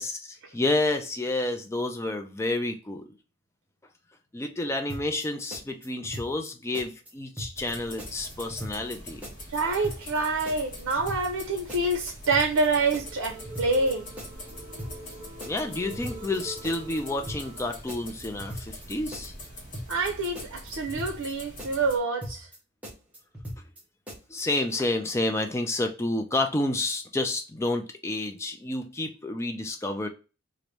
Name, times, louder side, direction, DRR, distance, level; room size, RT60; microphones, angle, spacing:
voice 1, 0.0-3.1 4.3-9.2 15.4-19.3 24.3-30.1, left 2 dB, 15° left, 0.3 m, -29 dB
sound 1, 4.9-5.3 5.5-6.5 6.7-7.1 7.4-7.7 8.0-9.0 9.2-9.6 9.8-10.2 10.5-11.4 11.7-12.1 12.3-12.7 12.9-13.9 14.2-14.5 14.8-15.1 15.4-16.4 16.6-17.0 17.3-17.6 17.9-18.9 19.1-19.5 19.7-20.1 20.4-21.3 21.6-22.0 22.2-22.6 22.8-23.8 24.1-24.4, equal, 5° right, 0.9 m, -39 dB
sound 2, 7.6-22.0, left 1 dB, 40° left, 1.2 m, -44 dB
sound 3, 9.4-17.7, right 1 dB, 30° right, 1.2 m, -46 dB
voice 2, 9.5-14.1 19.9-22.5, right 3 dB, 80° right, 0.5 m, -27 dB
3.0 x 2.5 x 3.1 m
head